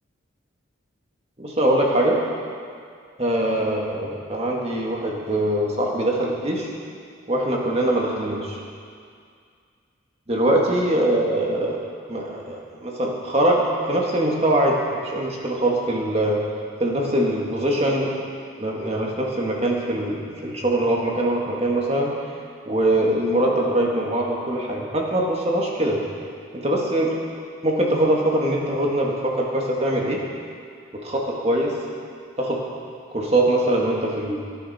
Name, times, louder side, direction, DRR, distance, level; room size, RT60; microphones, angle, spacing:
voice 1, 1.4-2.2 3.2-6.7 7.3-8.6 10.3-11.8 12.1-13.6 13.9-16.4 16.8-18.1 18.6-22.1 22.7-26.0 26.5-27.1 27.6-30.2 30.9-31.7 32.4-32.6 33.1-34.4, right 1 dB, 30° right, -2 dB, 1.9 m, -22 dB
19.5 x 10.5 x 4.3 m, 2.2 s
head